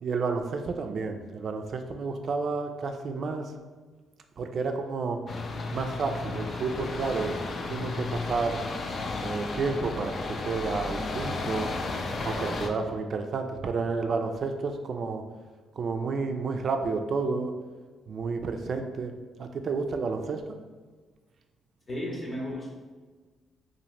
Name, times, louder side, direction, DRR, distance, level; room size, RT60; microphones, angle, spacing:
voice 1, 0.0-3.5 4.4-5.2 5.7-7.4 7.7-8.6 9.2-11.7 12.2-15.2 15.8-17.5 18.1-19.1 19.4-20.4, right 4 dB, 55° right, 5 dB, 0.3 m, -30 dB
sound 1, 5.3-12.7, left 3 dB, 50° left, 0.3 m, -33 dB
voice 2, 21.9-22.7, left 1 dB, 30° left, -3 dB, 0.8 m, -34 dB
2.8 x 2.5 x 3.0 m, 1.4 s
cardioid pair, 90°, 0 cm